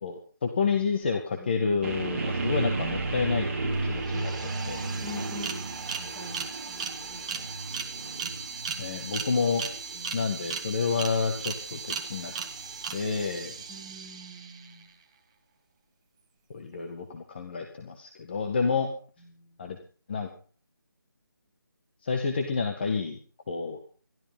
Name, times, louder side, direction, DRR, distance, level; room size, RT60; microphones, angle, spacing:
voice 1, 0.0-4.9 8.8-9.6 10.1-12.3 12.9-13.6 16.5-18.9 19.6-19.8 20.1-20.3 22.0-23.2 23.5-23.8, left 5 dB, 30° left, 4 dB, 1.9 m, -29 dB
sound 1, 1.8-13.8, right 3 dB, 35° right, 2.8 m, -34 dB
sound 2, 3.7-3.8 4.0-14.8, right 6 dB, 15° right, 1.4 m, -37 dB
voice 2, 5.0-7.5 8.7-9.0 9.9-10.3 13.7-14.9 19.2-19.7, left 2 dB, 10° left, -3 dB, 3.5 m, -45 dB
22.5 x 14.0 x 3.9 m, 0.40 s
figure-of-eight pair, 170°, 12 cm